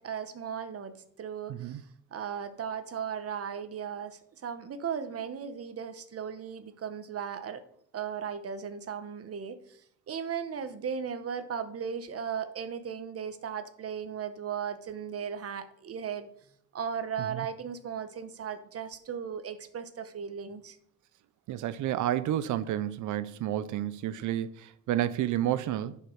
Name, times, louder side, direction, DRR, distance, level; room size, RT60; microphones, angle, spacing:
voice 1, 0.0-1.8 2.1-7.6 7.9-9.8 10.1-16.3 16.7-20.8, right 7 dB, 50° right, 1.2 m, -36 dB
voice 2, 1.5-1.8 17.2-17.5 21.5-26.0, right 12 dB, 80° right, 0.7 m, -30 dB
10.0 x 5.5 x 6.4 m
cardioid pair, 90°, 30 cm